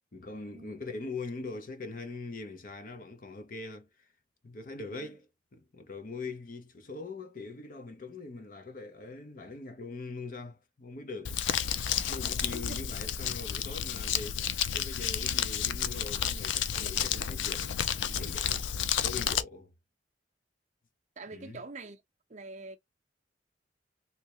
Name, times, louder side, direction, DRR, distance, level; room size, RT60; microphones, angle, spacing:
voice 1, 0.1-4.1 4.4-11.4 12.0-14.4 14.7-17.8 18.0-18.7 19.0-19.7 21.3-21.6, left 3 dB, 50° left, 0.7 m, -42 dB
Crumpling crinkling, 11.2-19.4, left 9 dB, 90° left, 0.4 m, -31 dB
voice 2, 21.2-22.0 22.3-22.8, right 3 dB, 40° right, 0.6 m, -44 dB
3.2 x 2.8 x 2.9 m
head